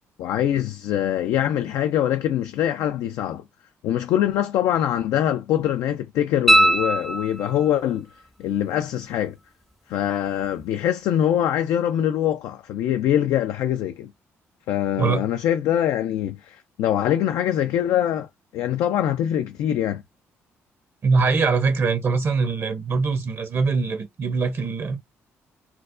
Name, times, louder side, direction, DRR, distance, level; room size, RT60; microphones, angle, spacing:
voice 1, 0.2-3.4 3.8-8.1 8.4-9.4 9.9-14.1 14.7-18.3 18.5-20.0, left 11 dB, 80° left, 0.3 m, -23 dB
sound 1, 6.5-7.8 10.6-10.7, right 1 dB, ahead, 0.5 m, -19 dB
voice 2, 15.0-15.3 21.0-25.0, right 4 dB, 50° right, 0.7 m, -22 dB
4.4 x 2.0 x 2.5 m
supercardioid pair, 70°, 6 cm